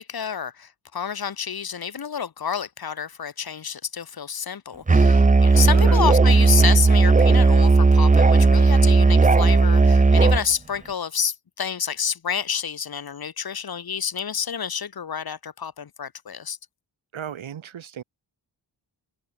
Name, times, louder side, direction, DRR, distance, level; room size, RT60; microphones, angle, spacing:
voice 1, 0.0-16.6, left 7 dB, 50° left, 1.5 m, -29 dB
Musical instrument, 4.9-10.5, right 4 dB, 15° right, 0.6 m, -15 dB
voice 2, 5.7-6.1 17.1-18.0, right 9 dB, 85° right, 2.4 m, -34 dB
open air
wide cardioid pair, 125°, 46 cm